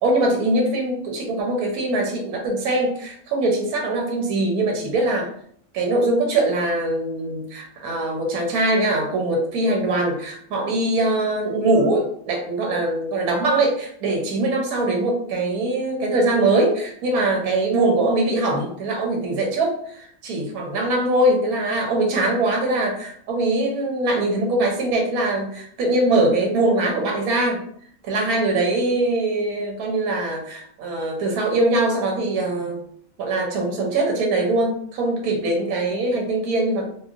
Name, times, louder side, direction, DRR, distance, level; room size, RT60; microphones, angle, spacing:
voice 1, 0.0-5.3 5.7-27.6 28.0-32.8 33.2-36.9, right 2 dB, 85° right, 1 dB, 1.1 m, -22 dB
3.0 x 2.4 x 2.4 m, 0.64 s
omnidirectional pair, 1.5 m